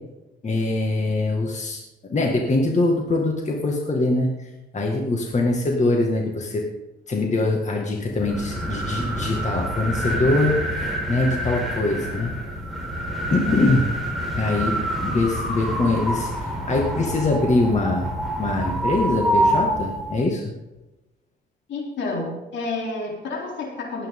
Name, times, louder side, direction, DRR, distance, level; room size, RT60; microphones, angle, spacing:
voice 1, 0.4-1.8 2.1-4.3 4.7-6.6 7.1-12.3 13.3-13.9 14.4-16.3 16.7-18.1 18.4-20.5, left 2 dB, 35° left, 0 dB, 2.0 m, -23 dB
sound 1, 8.0-20.2, right 1 dB, ahead, 4.5 m, -27 dB
voice 2, 21.7-24.1, left 3 dB, 70° left, 0 dB, 3.6 m, -30 dB
19.0 x 9.0 x 3.8 m, 1.0 s
cardioid pair, 90°, 20 cm